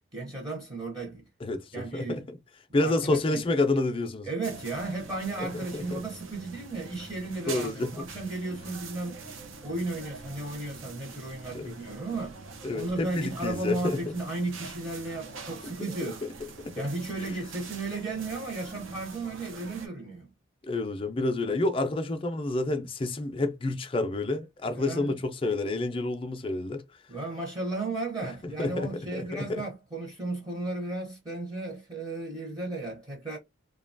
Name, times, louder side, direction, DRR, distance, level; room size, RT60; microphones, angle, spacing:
voice 1, 0.1-1.3 1.7-2.2 2.8-3.4 4.3-12.4 12.7-16.2 16.8-20.3 24.7-25.2 27.1-33.4, right 2 dB, 20° right, 0.7 m, -35 dB
voice 2, 1.4-2.4 2.7-4.3 5.4-6.0 7.5-7.9 11.5-11.7 12.6-14.1 15.6-15.7 16.0-16.3 16.7-16.9 17.2-17.3 20.6-26.8 28.4-29.6, left 2 dB, 25° left, 0.4 m, -29 dB
sound 1, 4.4-19.9, right 4 dB, 75° right, 0.6 m, -45 dB
2.8 x 2.2 x 2.5 m
head